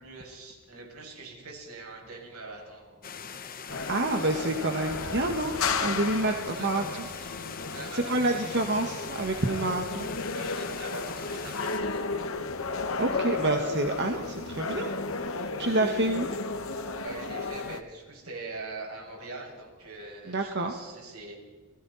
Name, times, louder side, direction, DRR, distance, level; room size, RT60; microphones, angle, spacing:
voice 1, 0.0-3.4 6.2-7.4 7.7-8.6 10.4-12.5 12.9-13.5 17.0-21.4, right 3 dB, 85° right, 1 dB, 6.9 m, -43 dB
sound 1, 3.0-11.8, left 6 dB, 40° left, 1.4 m, -42 dB
sound 2, 3.7-17.8, left 4 dB, 70° left, 1.7 m, -34 dB
voice 2, 3.9-6.8 7.9-10.1 13.0-14.9 15.4-16.3 20.3-20.7, right 2 dB, 55° right, 4 dB, 1.7 m, -28 dB
30.0 x 20.5 x 4.3 m, 1.4 s
head